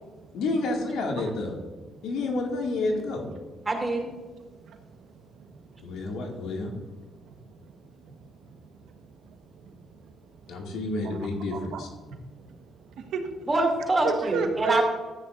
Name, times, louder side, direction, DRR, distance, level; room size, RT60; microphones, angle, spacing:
voice 1, 0.3-1.6 2.0-3.2 5.8-6.7 10.5-11.9, left 2 dB, 85° left, 1 dB, 2.1 m, -29 dB
voice 2, 3.7-4.1 13.5-14.8, right 2 dB, 20° right, 2 dB, 2.6 m, -25 dB
voice 3, 8.4-8.9 9.6-9.7 10.5-10.6 11.0-11.2 11.5-11.8 12.1-12.2 12.5-12.6 12.8-13.3 14.0-14.8, right 5 dB, 80° right, 5 dB, 1.2 m, -33 dB
13.5 x 9.6 x 2.6 m, 1.2 s
cardioid pair, 90°, 0 cm